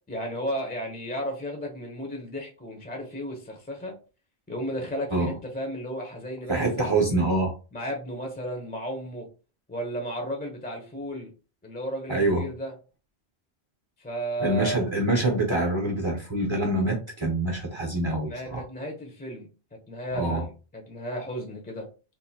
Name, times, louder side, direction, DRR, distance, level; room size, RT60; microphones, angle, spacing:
voice 1, 0.1-3.9 4.5-6.9 7.7-9.3 9.7-11.3 11.6-12.7 14.0-14.8 18.2-21.9, equal, 10° left, 1 dB, 0.7 m, -34 dB
voice 2, 6.5-7.5 12.1-12.4 14.4-18.6 20.1-20.4, right 2 dB, 30° right, 0 dB, 0.7 m, -25 dB
3.6 x 2.6 x 2.7 m, 0.34 s
omnidirectional pair, 1.1 m